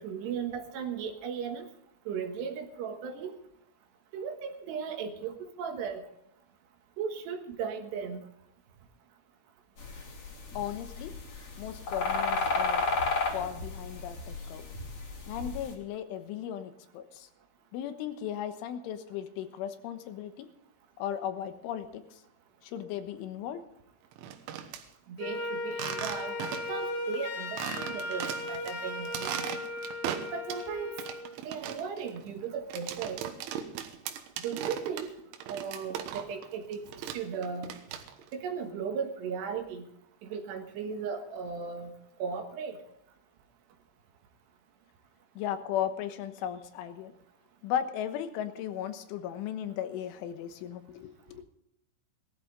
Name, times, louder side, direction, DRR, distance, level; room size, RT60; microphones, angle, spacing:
voice 1, 0.0-1.7 2.1-3.3 4.1-6.0 7.0-8.2 25.1-26.3 26.7-29.5 30.3-31.0 31.4-33.2 34.4-35.1 35.5-36.8 37.1-37.7 38.3-39.9 40.2-41.9 42.2-42.8, right 6 dB, 70° right, 5 dB, 3.3 m, -36 dB
sound 1, 9.8-15.7, left 4 dB, 35° left, 3.2 m, -32 dB
voice 2, 10.6-11.1 11.6-12.9 13.3-14.7 15.3-17.3 17.7-20.5 21.0-22.2 22.6-23.6 45.4-47.1 47.6-51.4, left 10 dB, 85° left, 9 dB, 3.7 m, -36 dB
sound 2, 24.1-24.8 25.7-26.8 27.1-27.2 27.6-28.7 29.1-30.7 31.0-36.5 36.7-38.3, right 9 dB, 90° right, 3.5 m, -38 dB
Wind instrument woodwind instrument, 25.2-31.3, left 2 dB, 60° left, 3.0 m, -37 dB
19.0 x 13.5 x 3.9 m, 0.78 s
omnidirectional pair, 5.4 m